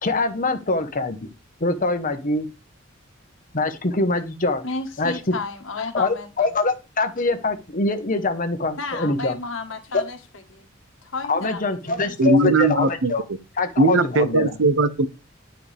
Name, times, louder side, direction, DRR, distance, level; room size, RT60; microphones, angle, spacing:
voice 1, 0.0-1.2 1.6-2.5 3.5-4.6 5.0-5.1 5.9-9.4 9.9-10.0 11.3-13.2 13.6-14.6, left 3 dB, 45° left, 1.2 m, -24 dB
voice 2, 4.6-6.5 8.8-10.2 10.5-10.7 11.0-12.1, left 3 dB, 80° left, 1.6 m, -32 dB
voice 3, 12.2-13.1 13.8-15.1, right 2 dB, 70° right, 0.8 m, -19 dB
9.9 x 5.7 x 3.5 m
head